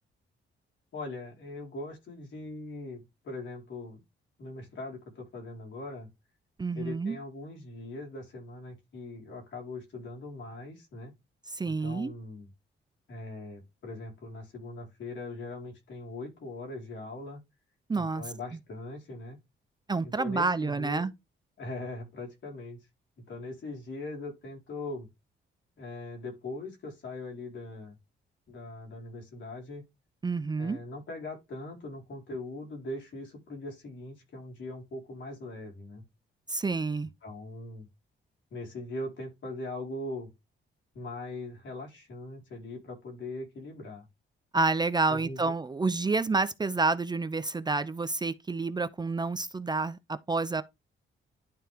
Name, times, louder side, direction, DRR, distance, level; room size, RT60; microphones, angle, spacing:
voice 1, 0.9-4.0 4.4-6.1 6.7-11.1 11.7-12.5 13.1-17.4 18.0-19.4 20.0-21.1 21.6-22.8 23.3-25.1 25.8-28.0 28.5-29.8 30.6-36.0 37.2-37.9 38.5-40.3 40.9-44.1 45.1-45.5, left 2 dB, 65° left, 4.3 m, -41 dB
voice 2, 6.6-7.2 11.5-12.1 17.9-18.2 19.9-21.1 30.2-30.8 36.5-37.1 44.5-50.6, right 3 dB, 20° right, 0.5 m, -29 dB
11.5 x 4.4 x 3.4 m
cardioid pair, 115°, 20 cm